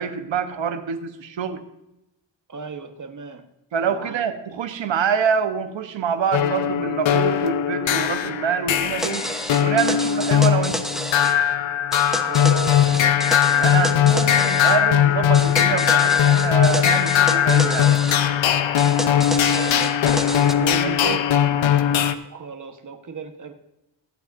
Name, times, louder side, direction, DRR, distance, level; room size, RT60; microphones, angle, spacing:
voice 1, 0.0-1.6 3.7-9.3 9.6-10.8 13.6-17.9 21.0-21.2, right 7 dB, 75° right, 9 dB, 1.1 m, -25 dB
voice 2, 2.5-3.4 3.8-4.3 12.1-14.8 19.1-21.2 22.2-23.5, right 5 dB, 40° right, 7 dB, 1.3 m, -36 dB
sound 1, 6.3-22.1, left 10 dB, 80° left, 0.8 m, -19 dB
sound 2, 9.0-11.4 11.9-14.8 15.3-18.2 18.8-20.5, equal, ahead, 0.9 m, -30 dB
22.5 x 8.0 x 2.6 m, 0.92 s
cardioid pair, 80°, 45 cm